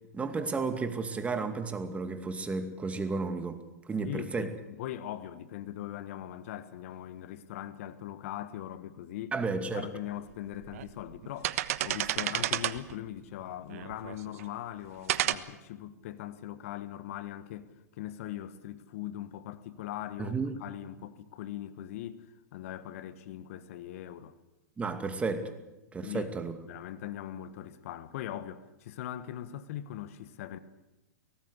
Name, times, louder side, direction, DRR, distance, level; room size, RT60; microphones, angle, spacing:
voice 1, 0.1-3.6 3.9-4.5 9.3-9.9 20.2-20.6 24.8-25.5 25.9-26.6, right 4 dB, 15° right, 2.4 m, -32 dB
voice 2, 4.0-9.3 9.7-24.3 26.0-26.3 26.6-30.6, left 12 dB, 55° left, 1.4 m, -40 dB
sound 1, 9.8-9.9 10.5-10.9 11.2-12.9 13.7-14.4 15.1-15.3, right 14 dB, 60° right, 1.2 m, -31 dB
23.5 x 18.5 x 8.3 m
hypercardioid pair, 115°, 9 cm